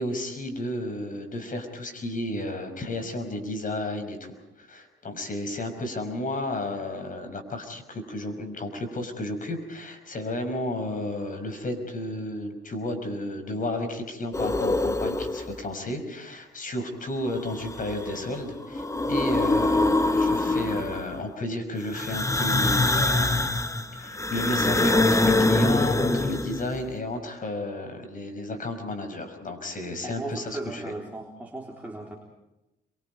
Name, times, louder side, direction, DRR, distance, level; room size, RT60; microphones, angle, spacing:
voice 1, 0.0-23.4 23.9-30.8, left 1 dB, 40° left, 7 dB, 5.7 m, -32 dB
sound 1, 14.3-15.6 17.3-18.3 18.6-21.2 21.9-26.8, left 2 dB, 15° left, 1.3 m, -24 dB
voice 2, 30.0-32.2, right 2 dB, 10° right, 0 dB, 3.8 m, -36 dB
27.0 x 23.5 x 5.5 m, 0.96 s
cardioid pair, 90°, 20 cm